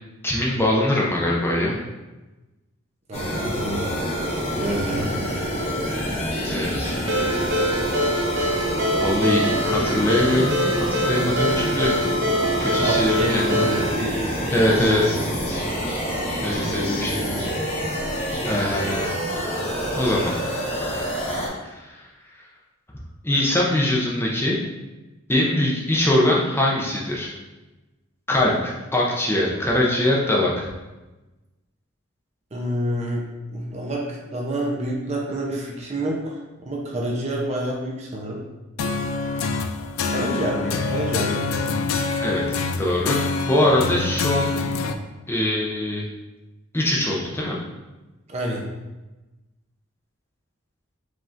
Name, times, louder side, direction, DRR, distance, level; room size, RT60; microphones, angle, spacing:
voice 1, 0.2-1.8 6.5-7.0 8.4-8.7 9.0-10.6 11.1-11.9 12.6-13.7 14.5-15.0 16.4-17.4 18.4-19.1 20.0-20.3 21.6-22.0 23.2-24.6 25.3-27.3 28.3-30.7 42.2-44.6 45.3-46.0 46.7-47.6, left 1 dB, 10° left, -3 dB, 0.6 m, -22 dB
sound 1, 3.1-21.5, equal, 30° left, 1.0 m, -27 dB
voice 2, 3.1-3.8 4.5-5.1 5.4-5.5 5.8-5.9 12.8-15.0 15.3-15.4 16.1-16.2 32.5-33.2 33.5-38.4 40.1-41.6 48.3-48.6, right 1 dB, 30° right, -2 dB, 0.6 m, -28 dB
Ringtone, 7.1-13.9, equal, 65° right, 0.8 m, -24 dB
sound 2, 38.8-44.9, left 4 dB, 75° left, 0.3 m, -26 dB
5.0 x 3.6 x 2.5 m, 1.1 s
head